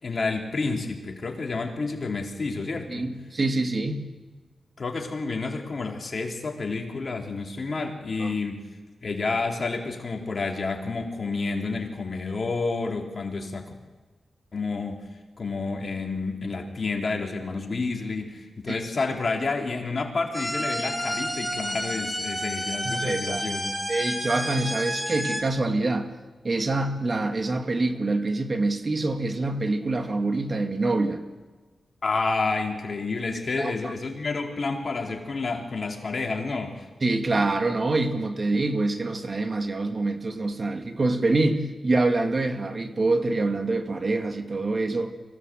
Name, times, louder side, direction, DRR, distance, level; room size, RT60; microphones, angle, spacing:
voice 1, 0.0-3.1 4.8-8.7 9.0-13.7 14.5-15.0 15.4-23.7 32.0-36.9, left 3 dB, 55° left, 1 dB, 4.1 m, -29 dB
voice 2, 2.9-4.0 8.2-8.3 18.7-18.8 22.8-23.4 23.9-26.1 26.4-31.2 33.6-33.9 37.0-45.1, right 2 dB, 45° right, 6 dB, 2.5 m, -25 dB
sound 1, 20.3-25.4, equal, 5° right, 7.0 m, -30 dB
24.5 x 17.5 x 8.0 m, 1.3 s
cardioid pair, 50°, 0 cm